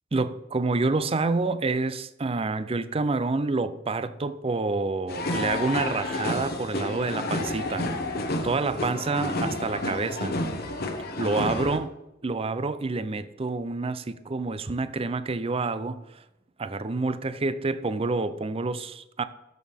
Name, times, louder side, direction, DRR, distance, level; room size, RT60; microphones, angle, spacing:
voice 1, 0.1-7.9 8.4-10.4 11.2-11.9 12.2-16.2 16.6-19.2, right 3 dB, 30° right, 0.5 m, -28 dB
sound 1, 5.1-11.8, left 1 dB, 55° left, 1.2 m, -30 dB
13.0 x 6.5 x 3.5 m
head